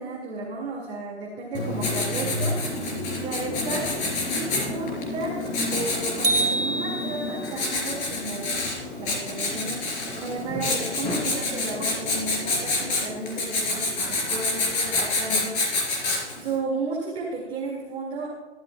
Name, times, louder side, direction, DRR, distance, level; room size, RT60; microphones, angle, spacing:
voice 1, 0.0-4.0 4.3-5.3 5.7-8.6 8.9-16.0 16.4-18.3, right 3 dB, 15° right, -3 dB, 2.1 m, -33 dB
Writing, 1.5-16.5, left 2 dB, 20° left, 3.6 m, -28 dB
sound 1, 6.2-7.6, right 2 dB, 60° right, 2.8 m, -26 dB
18.0 x 13.0 x 2.3 m, 1.2 s
hypercardioid pair, 140°, 34 cm